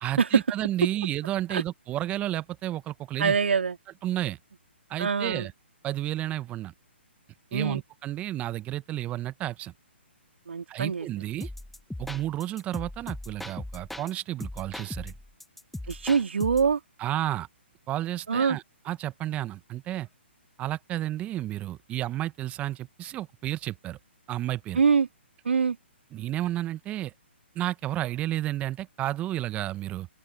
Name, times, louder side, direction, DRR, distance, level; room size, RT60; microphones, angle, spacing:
voice 1, 0.0-3.4 4.0-4.4 4.9-5.5 5.8-6.7 7.5-9.7 10.7-11.5 12.0-15.1 17.0-17.5 17.9-20.1 20.6-24.0 24.3-24.8 26.1-27.1 27.5-30.1, right 14 dB, 20° right, 1.3 m, -31 dB
voice 2, 3.2-3.8 5.0-5.5 7.5-7.8 10.5-11.1 15.9-16.8 18.3-18.6 24.7-25.1 25.4-25.8, right 6 dB, 70° right, 2.8 m, -24 dB
sound 1, 11.4-14.1 14.4-16.7, left 1 dB, ahead, 1.2 m, -39 dB
open air
figure-of-eight pair, 130°, 6 cm